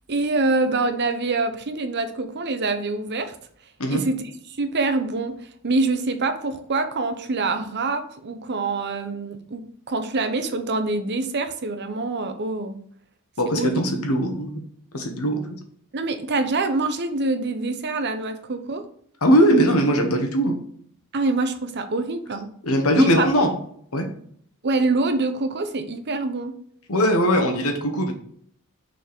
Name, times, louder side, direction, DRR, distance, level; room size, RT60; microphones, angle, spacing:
voice 1, 0.1-3.3 3.9-12.8 13.5-13.8 15.9-18.9 21.1-22.5 23.0-23.5 24.6-26.6, right 3 dB, 50° right, 9 dB, 0.8 m, -25 dB
voice 2, 13.4-14.6 14.9-15.4 19.2-20.6 22.6-23.6 23.9-24.1 26.9-28.1, equal, 75° left, 5 dB, 1.3 m, -20 dB
6.3 x 4.3 x 3.6 m, 0.63 s
head